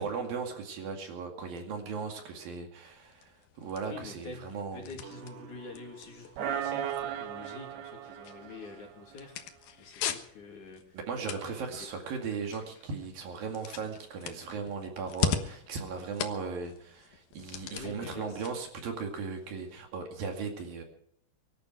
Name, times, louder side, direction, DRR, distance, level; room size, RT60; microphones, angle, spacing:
voice 1, 0.0-4.9 11.0-20.8, right 5 dB, 60° right, 3 dB, 3.9 m, -37 dB
sound 1, 2.9-19.8, left 8 dB, 65° left, 2.8 m, -41 dB
voice 2, 3.8-11.0 11.4-11.9 17.6-18.5, left 4 dB, 50° left, 2 dB, 4.0 m, -47 dB
sound 2, 5.0-6.0 6.4-9.1, right 10 dB, 80° right, 3.0 m, -37 dB
24.5 x 12.0 x 4.7 m, 0.70 s
omnidirectional pair, 4.8 m